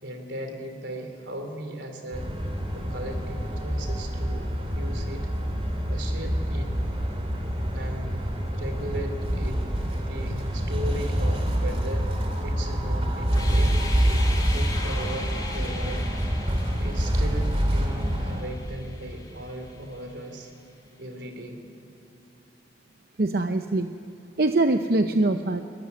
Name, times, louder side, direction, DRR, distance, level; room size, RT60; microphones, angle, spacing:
voice 1, 0.0-2.3 2.7-5.3 5.9-6.7 7.7-8.2 8.5-9.6 9.9-13.7 14.4-16.4 16.7-20.5 21.0-21.6, right 1 dB, 85° right, 5 dB, 3.4 m, -37 dB
sound 1, 2.1-18.4, equal, 35° right, 2.8 m, -26 dB
sound 2, 13.3-20.1, left 3 dB, 20° left, 2.5 m, -40 dB
voice 2, 23.2-23.9 24.4-25.6, right 2 dB, 55° right, 7 dB, 0.8 m, -23 dB
22.5 x 19.5 x 9.6 m, 2.9 s
head